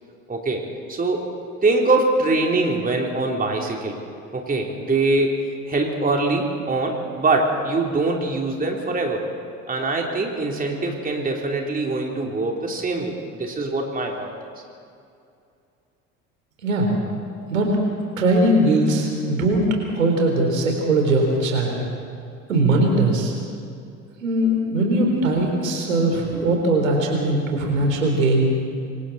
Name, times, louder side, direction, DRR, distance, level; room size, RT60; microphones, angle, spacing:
voice 1, 0.3-0.6 0.9-1.3 1.6-4.0 4.3-5.4 5.7-9.2 9.7-14.5, right 2 dB, 20° right, 0 dB, 3.2 m, -23 dB
voice 2, 18.2-21.8 22.5-23.3 24.2-28.6, right 1 dB, 75° right, 1 dB, 4.0 m, -20 dB
27.0 x 24.0 x 4.2 m, 2.5 s
figure-of-eight pair, 60°, 40 cm